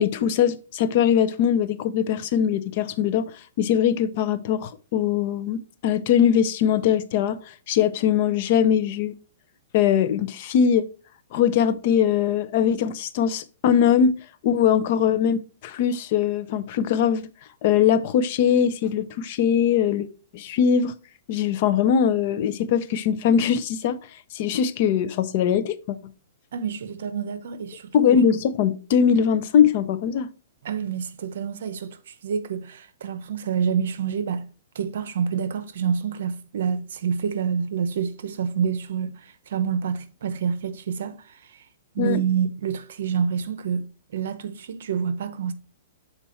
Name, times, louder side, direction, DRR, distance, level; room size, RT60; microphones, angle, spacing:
voice 1, 0.0-3.3 3.6-7.4 7.7-9.1 9.7-10.9 11.3-14.2 14.4-17.2 17.6-20.1 20.3-20.9 21.3-24.0 24.3-26.0 27.9-30.3 42.0-42.2, left 8 dB, 40° left, 0.6 m, -21 dB
voice 2, 26.5-28.1 30.6-34.5 34.7-39.1 39.5-41.2 41.9-43.8 44.1-45.5, right 7 dB, 65° right, 0.8 m, -27 dB
7.0 x 4.3 x 4.3 m
hypercardioid pair, 165°, 0 cm